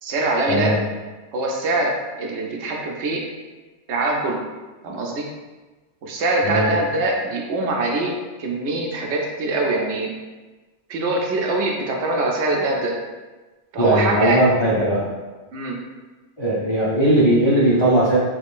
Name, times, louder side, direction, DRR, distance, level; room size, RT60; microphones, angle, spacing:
voice 1, 0.0-0.7 1.3-3.2 3.9-4.4 4.8-5.3 6.0-8.1 8.4-10.1 10.9-12.9 13.7-14.4 15.5-15.8, right 2 dB, 70° right, 0 dB, 0.9 m, -23 dB
voice 2, 13.8-15.1 16.4-18.2, right 1 dB, 35° left, -8 dB, 0.5 m, -18 dB
3.5 x 3.1 x 2.4 m, 1.2 s
omnidirectional pair, 1.2 m